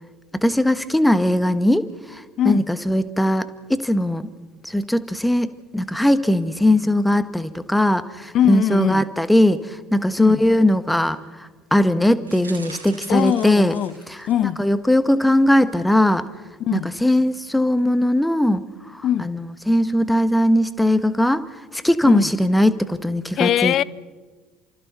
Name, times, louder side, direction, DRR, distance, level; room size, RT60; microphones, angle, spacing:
voice 1, 0.4-4.3 4.6-9.7 9.9-11.2 11.7-13.7 14.6-16.2 16.7-18.6 18.9-21.4 21.7-23.8, left 1 dB, 5° left, 1.4 m, -19 dB
voice 2, 2.4-2.7 8.3-9.0 10.2-10.4 13.1-14.0 14.3-14.6 16.6-16.9 19.0-19.3 22.0-22.3 23.3-23.8, left 11 dB, 50° left, 0.7 m, -21 dB
sound 1, 12.2-14.5 15.1-15.3 15.6-15.7, right 4 dB, 85° right, 3.1 m, -42 dB
30.0 x 27.0 x 4.2 m
figure-of-eight pair, 60°, 0 cm